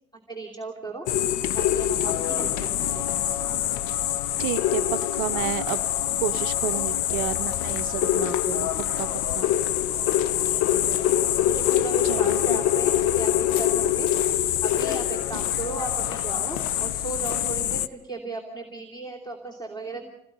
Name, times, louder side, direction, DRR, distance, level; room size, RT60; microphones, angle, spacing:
voice 1, 0.3-3.1 10.4-20.0, right 3 dB, 10° left, 1 dB, 3.0 m, -37 dB
sound 1, 1.1-17.9, left 12 dB, 45° left, 0.9 m, -25 dB
voice 2, 4.4-5.8 6.2-8.7 9.0-9.1 9.3-9.5 12.0-12.6, right 14 dB, 50° right, 13 dB, 0.8 m, -31 dB
27.5 x 18.0 x 5.5 m, 0.94 s
figure-of-eight pair, 65°, 42 cm